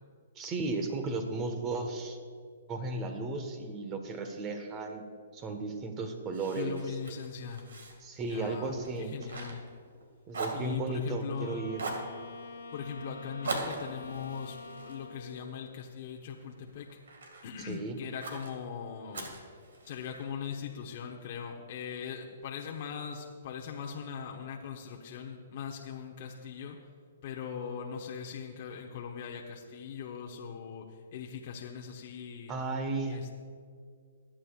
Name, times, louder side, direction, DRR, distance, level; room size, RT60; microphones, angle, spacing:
voice 1, 0.4-2.2 2.7-5.0 5.3-6.8 8.0-9.1 10.3-11.8 17.7-18.0 32.5-33.2, right 3 dB, 25° right, 6 dB, 1.4 m, -34 dB
Fire, 6.3-10.0 10.3-11.3 11.7-12.1 13.4-15.9 16.4-17.5 18.2-18.5 19.1-20.2, right 3 dB, 80° right, 2.1 m, -41 dB
voice 2, 6.5-7.7 8.3-9.6 10.5-11.6 12.7-16.9 17.4-19.4 19.8-26.8 27.2-32.5 33.0-33.4, left 7 dB, 50° left, 0 dB, 1.0 m, -40 dB
Wind instrument woodwind instrument, 11.2-15.6, left 3 dB, 90° left, 2.0 m, -46 dB
24.5 x 8.7 x 2.5 m, 2.1 s
hypercardioid pair, 140°, 0 cm